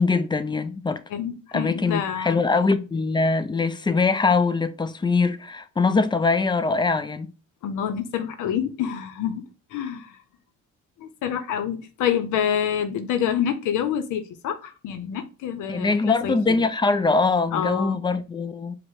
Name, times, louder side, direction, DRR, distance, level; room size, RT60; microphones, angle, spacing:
voice 1, 0.0-1.0 1.5-7.3 15.7-18.8, left 4 dB, 15° left, 0.4 m, -22 dB
voice 2, 1.1-2.4 7.6-9.4 9.7-10.2 11.0-16.7 17.5-18.0, left 9 dB, 85° left, 0.6 m, -27 dB
4.8 x 2.1 x 4.5 m
cardioid pair, 90°, 30 cm